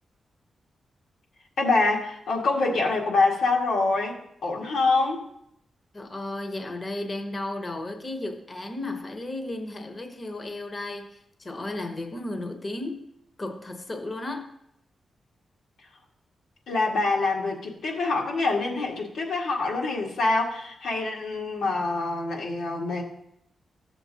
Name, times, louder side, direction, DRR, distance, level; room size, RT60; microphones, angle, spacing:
voice 1, 1.6-4.2 4.4-5.2 16.7-23.0, left 3 dB, 90° left, -2 dB, 1.8 m, -25 dB
voice 2, 5.9-13.1 13.4-14.5, left 2 dB, 25° left, 5 dB, 0.9 m, -34 dB
14.5 x 7.2 x 2.8 m, 0.77 s
wide cardioid pair, 145°, 0 cm